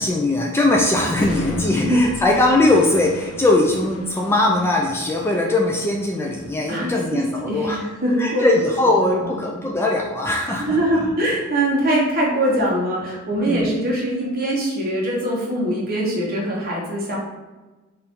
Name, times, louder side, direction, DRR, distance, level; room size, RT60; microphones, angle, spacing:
voice 1, 0.0-7.8 8.2-11.1 13.5-13.7, left 2 dB, 10° left, -1 dB, 0.3 m, -20 dB
sound 1, 1.2-9.2, left 1 dB, 80° left, 0.4 m, -38 dB
voice 2, 7.4-8.5 9.2-9.3 10.6-17.2, right 1 dB, 45° right, -3 dB, 1.1 m, -22 dB
4.5 x 2.6 x 3.6 m, 1.2 s
head